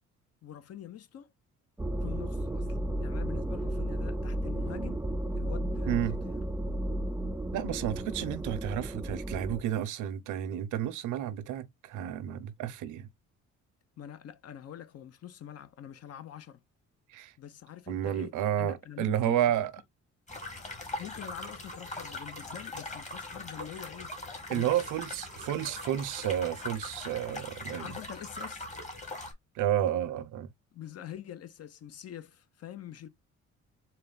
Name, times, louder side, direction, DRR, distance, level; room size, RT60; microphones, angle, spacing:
voice 1, 0.4-1.3 2.0-5.0 5.3-6.0 6.2-6.4 14.0-16.6 17.4-19.6 21.0-24.1 24.5-24.8 27.8-28.7 30.7-33.1, left 10 dB, 55° left, 0.7 m, -45 dB
sound 1, 1.8-9.6, right 1 dB, 5° right, 0.3 m, -33 dB
voice 2, 5.9-6.2 7.5-13.1 17.1-17.3 17.9-19.7 24.5-27.9 29.6-30.5, right 11 dB, 85° right, 0.7 m, -31 dB
sound 2, 20.3-29.3, left 2 dB, 25° left, 1.4 m, -41 dB
4.1 x 2.3 x 3.9 m
cardioid pair, 90°, 30 cm